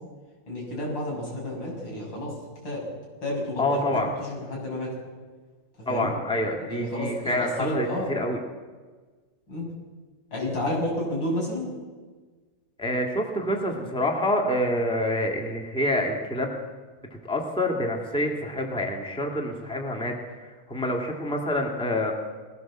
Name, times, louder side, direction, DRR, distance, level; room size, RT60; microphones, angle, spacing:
voice 1, 0.5-2.3 2.6-2.9 3.2-3.8 4.2-4.9 5.8-6.1 6.6-8.1 9.5-9.7 10.3-11.7, left 1 dB, 75° left, -3 dB, 7.5 m, -30 dB
voice 2, 3.6-4.1 5.9-8.4 12.8-16.6 17.2-20.1 20.4-22.1, left 1 dB, 5° left, 1 dB, 2.3 m, -27 dB
20.5 x 17.0 x 7.6 m, 1.4 s
omnidirectional pair, 2.1 m